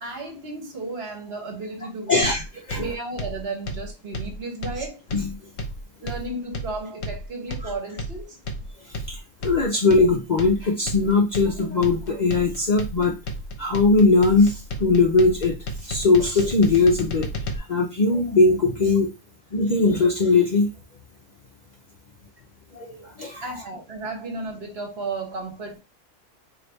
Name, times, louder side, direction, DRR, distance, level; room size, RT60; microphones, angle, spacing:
voice 1, 0.0-2.3 2.7-5.0 6.0-8.4 23.2-25.8, right 3 dB, 55° right, 1.2 m, -33 dB
voice 2, 2.1-2.4 2.7-2.8 5.1-5.3 7.6-7.7 9.1-13.1 13.6-15.6 15.8-17.3 17.6-19.1 19.5-20.7 22.7-23.4, left 3 dB, 45° left, 0.6 m, -20 dB
sound 1, 2.2-17.6, equal, 60° left, 1.0 m, -33 dB
3.9 x 2.6 x 3.4 m
omnidirectional pair, 1.3 m